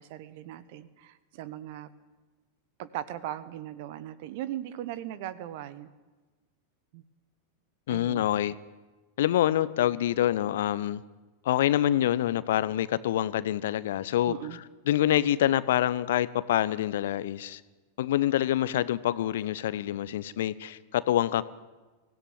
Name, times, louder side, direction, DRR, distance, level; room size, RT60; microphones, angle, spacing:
voice 1, 0.0-1.9 2.8-5.9 6.9-7.0 7.9-8.3 14.3-14.6, right 12 dB, 50° right, 16 dB, 1.3 m, -38 dB
voice 2, 7.9-8.5 9.2-11.0 11.4-17.6 18.0-21.4, left 12 dB, 55° left, 17 dB, 0.9 m, -26 dB
24.0 x 16.5 x 9.2 m, 1.2 s
figure-of-eight pair, 90°, 0 cm